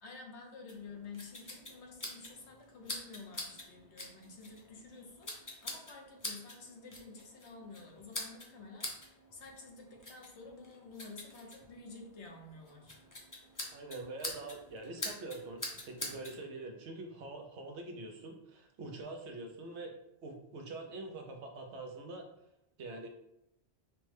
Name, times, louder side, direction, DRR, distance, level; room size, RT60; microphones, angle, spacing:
voice 1, 0.0-12.9, left 4 dB, 80° left, 1 dB, 1.1 m, -51 dB
sound 1, 0.7-16.4, left 1 dB, 25° left, 0.5 m, -46 dB
voice 2, 13.7-19.9 20.2-22.3 22.8-23.1, right 2 dB, 80° right, 3 dB, 1.0 m, -44 dB
5.7 x 2.1 x 3.2 m, 0.83 s
omnidirectional pair, 1.1 m